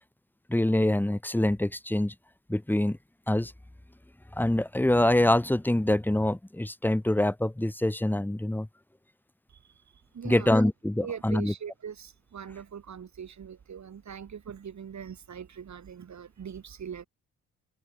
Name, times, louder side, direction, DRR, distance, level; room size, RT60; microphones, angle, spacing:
voice 1, 0.5-2.1 2.5-3.0 3.3-3.5 4.4-8.7 10.2-11.5, left 1 dB, 5° left, 1.4 m, -25 dB
voice 2, 9.5-10.7 11.0-17.1, right 7 dB, 45° right, 6.6 m, -42 dB
figure-of-eight pair, 40°, 40 cm